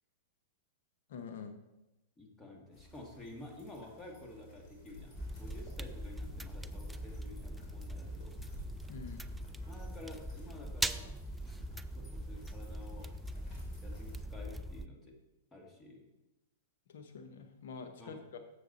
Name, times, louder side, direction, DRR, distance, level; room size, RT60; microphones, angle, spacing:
voice 1, 1.1-1.5 8.9-9.3 16.9-18.4, left 5 dB, 70° left, 7 dB, 0.8 m, -46 dB
voice 2, 2.2-8.4 9.7-11.2 11.9-13.1 13.8-15.2 15.5-16.1 18.0-18.2, left 2 dB, 15° left, 1 dB, 1.8 m, -51 dB
sound 1, 2.7-14.2, left 2 dB, 40° left, 2.5 m, -56 dB
sound 2, 5.2-14.9, right 1 dB, 5° right, 0.3 m, -41 dB
7.1 x 6.8 x 4.0 m, 0.96 s
hypercardioid pair, 115°, 0 cm